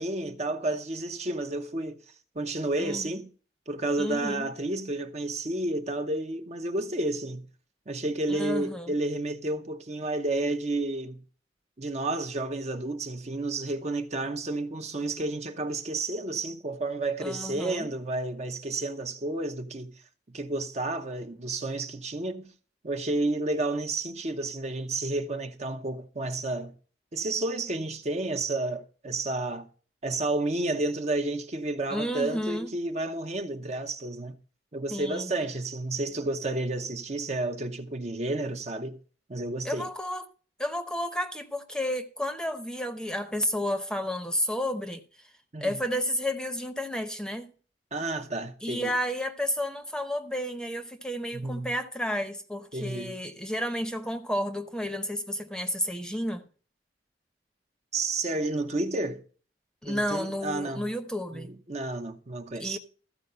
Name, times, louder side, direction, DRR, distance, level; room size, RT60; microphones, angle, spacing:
voice 1, 0.0-2.0 2.3-3.3 3.7-7.5 7.9-11.2 11.8-19.9 20.3-22.5 22.8-26.7 27.1-29.7 30.0-34.4 34.7-39.0 39.3-39.9 45.5-45.8 47.9-48.9 51.3-51.7 52.7-53.1 57.9-59.2 59.9-60.9 61.3-62.8, right 2 dB, 40° right, 0.8 m, -31 dB
voice 2, 2.8-3.1 4.0-4.5 8.3-8.9 17.2-17.9 31.9-32.7 34.9-35.3 39.6-40.3 40.6-45.0 45.6-47.5 48.6-56.4 59.8-61.5 62.6-62.8, equal, 5° left, 0.8 m, -31 dB
14.0 x 4.7 x 6.7 m
head